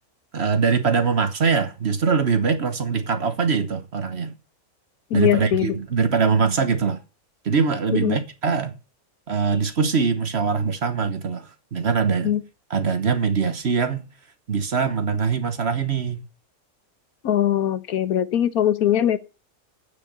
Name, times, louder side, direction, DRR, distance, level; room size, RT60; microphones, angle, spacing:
voice 1, 0.3-4.3 5.1-7.0 7.4-8.7 9.3-12.3 12.7-14.1 14.5-16.2, right 5 dB, 50° right, 1.2 m, -22 dB
voice 2, 5.1-5.7 7.9-8.2 12.2-12.4 17.2-19.2, left 11 dB, 75° left, 1.4 m, -21 dB
8.6 x 6.6 x 8.6 m
omnidirectional pair, 1.6 m